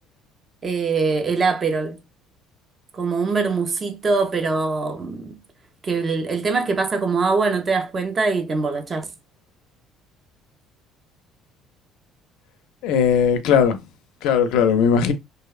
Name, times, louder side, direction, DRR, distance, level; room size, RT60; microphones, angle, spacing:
voice 1, 0.6-2.0 2.9-5.4 5.8-9.1, right 4 dB, 25° right, 0.4 m, -23 dB
voice 2, 12.8-13.8 14.2-15.1, left 7 dB, 70° left, 0.4 m, -18 dB
2.6 x 2.0 x 2.3 m
cardioid pair, 165°, 0 cm